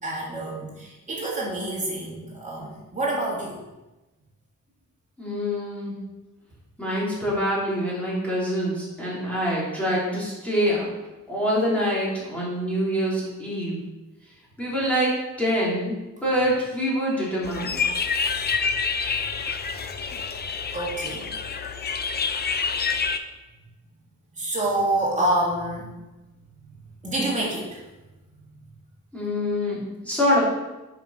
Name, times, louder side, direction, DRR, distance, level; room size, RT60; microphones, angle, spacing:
voice 1, 0.0-3.6 19.0-19.1 20.7-21.2 24.3-25.9 27.0-27.8, right 1 dB, 20° right, -5 dB, 2.6 m, -27 dB
voice 2, 5.2-5.9 6.8-10.9 11.3-13.8 14.6-15.1 15.4-17.8 29.1-29.8 30.0-30.4, equal, 5° left, -8 dB, 3.1 m, -25 dB
sound 1, 17.4-23.2, left 5 dB, 30° left, 0.5 m, -27 dB
7.3 x 5.4 x 5.6 m, 1.1 s
wide cardioid pair, 140°, 32 cm